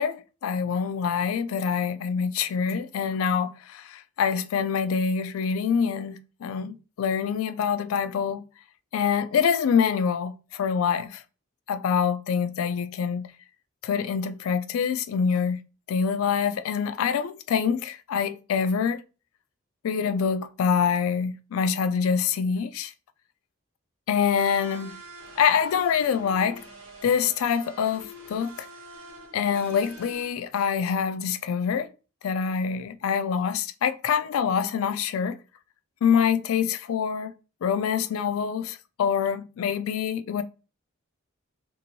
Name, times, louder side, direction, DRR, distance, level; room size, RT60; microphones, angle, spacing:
voice 1, 0.0-8.4 8.9-11.2 11.7-13.3 13.8-15.6 15.9-19.0 19.8-22.9 24.1-25.0 25.4-26.6 27.0-28.7 29.3-31.9 32.2-35.4 36.0-37.3 37.6-40.4, left 7 dB, 85° left, 0.3 m, -25 dB
sound 1, 24.4-30.3, right 1 dB, 90° right, 1.0 m, -46 dB
2.6 x 2.6 x 2.9 m
head